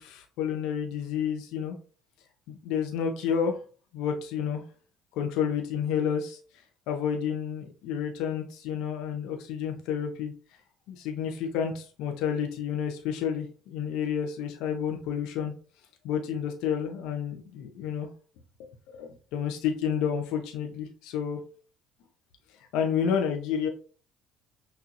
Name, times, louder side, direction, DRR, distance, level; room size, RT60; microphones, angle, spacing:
voice 1, 0.0-1.7 2.5-3.6 3.9-4.6 5.1-10.3 10.9-15.5 16.0-18.1 18.9-21.4 22.5-23.7, left 7 dB, 70° left, 3 dB, 0.8 m, -30 dB
6.1 x 2.7 x 2.5 m, 0.38 s
hypercardioid pair, 65°, 0 cm